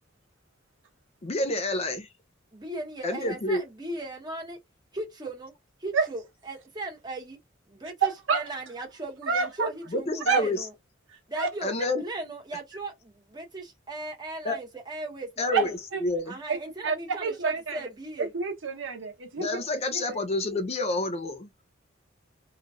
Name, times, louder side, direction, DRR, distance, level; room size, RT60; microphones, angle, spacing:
voice 1, 1.2-2.1 3.0-3.6 9.9-10.6 11.6-12.0 14.4-14.6 15.4-16.4 19.4-21.5, left 2 dB, 30° left, 0.4 m, -29 dB
voice 2, 2.5-4.6 4.9-5.5 5.8-7.4 7.7-10.7 11.3-11.7 12.0-15.7 16.3-18.3, right 2 dB, 20° right, 1.1 m, -37 dB
voice 3, 8.0-8.4 9.3-9.7 10.3-10.4 11.3-11.5 15.5-16.0 16.5-16.6 16.8-17.9 18.2-19.6 20.1-20.2, right 5 dB, 70° right, 0.9 m, -28 dB
3.2 x 2.3 x 2.4 m
head